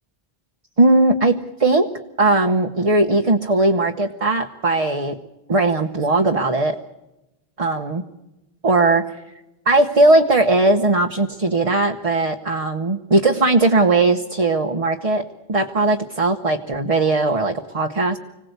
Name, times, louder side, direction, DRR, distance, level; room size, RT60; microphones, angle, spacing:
voice 1, 0.8-1.9 2.2-5.2 5.5-6.8 7.6-8.0 8.6-9.1 9.7-15.2 15.5-18.2, right 2 dB, 35° right, 4 dB, 1.0 m, -18 dB
25.5 x 17.5 x 8.1 m, 0.99 s
omnidirectional pair, 1.0 m